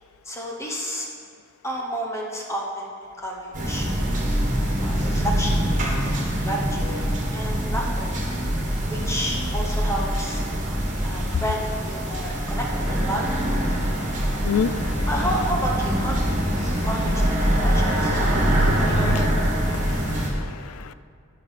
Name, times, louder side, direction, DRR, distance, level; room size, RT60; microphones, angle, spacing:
voice 1, 0.2-1.1 1.6-2.9 3.2-3.9 4.8-5.7 6.2-7.0 7.3-8.2 8.9-10.4 11.0-13.4 14.5-14.6 15.1-16.4 16.8-18.2 18.8-19.2, equal, 15° left, -1 dB, 1.0 m, -30 dB
sound 1, 3.5-20.3, equal, 35° right, 1.9 m, -24 dB
voice 2, 14.4-15.1 16.6-16.9 18.3-19.3 19.7-20.9, left 6 dB, 70° left, 14 dB, 0.4 m, -31 dB
10.0 x 5.2 x 7.4 m, 2.2 s
head